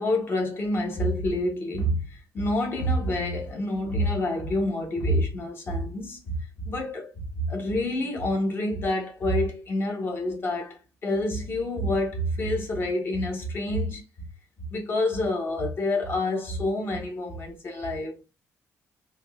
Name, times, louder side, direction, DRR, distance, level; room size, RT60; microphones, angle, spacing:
voice 1, 0.0-14.0 14.7-18.2, left 1 dB, 40° left, 1.1 m, -27 dB
3.5 x 2.8 x 2.4 m
cardioid pair, 155°, 6 cm